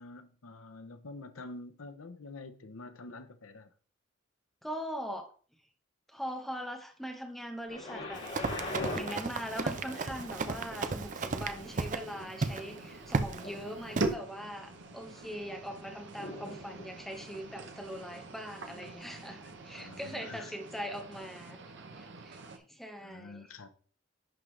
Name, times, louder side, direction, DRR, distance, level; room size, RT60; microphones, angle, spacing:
voice 1, 0.0-3.7 19.8-20.5 23.0-23.7, left 2 dB, 90° left, 0.8 m, -47 dB
voice 2, 4.6-5.3 6.1-8.2 8.5-21.6 21.9-23.5, equal, ahead, 1.0 m, -41 dB
Thunder, 7.7-19.5 20.3-20.4, left 2 dB, 55° left, 2.4 m, -45 dB
Run, 8.1-12.1 12.4-12.6 13.1-13.4 14.0-14.1, right 4 dB, 40° right, 0.5 m, -34 dB
sound 1, 9.2-22.6, right 2 dB, 60° right, 0.9 m, -43 dB
11.0 x 3.7 x 3.2 m
head